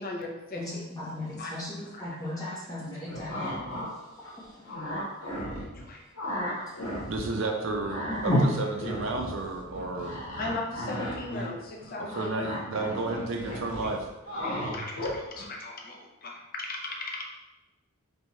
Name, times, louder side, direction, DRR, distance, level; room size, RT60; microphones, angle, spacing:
voice 1, 0.0-0.8 1.4-1.5 5.7-6.0 10.4-12.5 12.9-13.0 14.4-17.2, left 2 dB, 40° left, 0 dB, 0.6 m, -37 dB
voice 2, 0.5-4.3 6.6-6.8 8.2-8.5, left 1 dB, 15° left, -6 dB, 1.2 m, -32 dB
sound 1, 3.1-3.9 4.2-5.8 6.1-7.3 7.6-15.4, equal, 80° left, 1.3 m, -35 dB
voice 3, 7.1-8.3 8.6-10.2 12.0-14.1, right 3 dB, 60° right, 3 dB, 0.6 m, -32 dB
4.3 x 3.4 x 3.1 m, 0.99 s
head